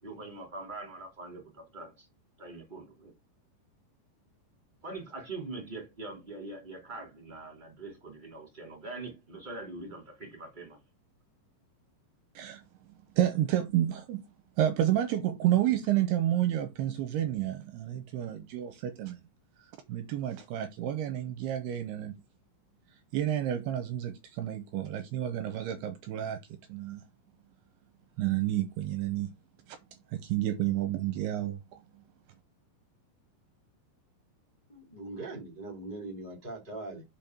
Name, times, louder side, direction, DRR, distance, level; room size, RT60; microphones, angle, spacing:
voice 1, 0.0-2.1 2.4-3.1 4.8-10.8, right 3 dB, 15° right, 2.4 m, -43 dB
voice 2, 13.2-14.2 14.6-19.2 19.9-22.2 23.1-26.4 26.7-27.0 28.2-29.3 30.1-31.8, right 12 dB, 75° right, 2.6 m, -30 dB
voice 3, 34.7-37.0, right 2 dB, 25° left, 0.9 m, -41 dB
5.8 x 5.3 x 5.9 m
omnidirectional pair, 5.2 m